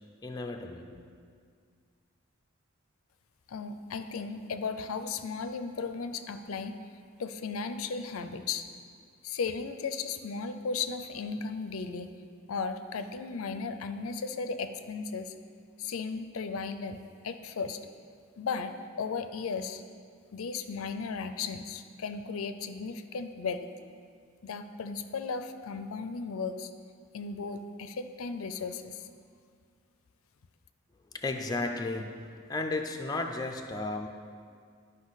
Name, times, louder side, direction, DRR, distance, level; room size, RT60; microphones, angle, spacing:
voice 1, 0.2-1.0 31.1-34.1, left 2 dB, 20° left, 3 dB, 0.5 m, -34 dB
voice 2, 3.5-6.8 7.2-8.7 9.2-12.1 12.5-15.3 15.8-17.8 18.4-19.8 20.3-23.6 24.4-26.7 27.1-29.1, left 5 dB, 80° left, 9 dB, 0.5 m, -35 dB
11.5 x 5.4 x 4.0 m, 2.1 s
head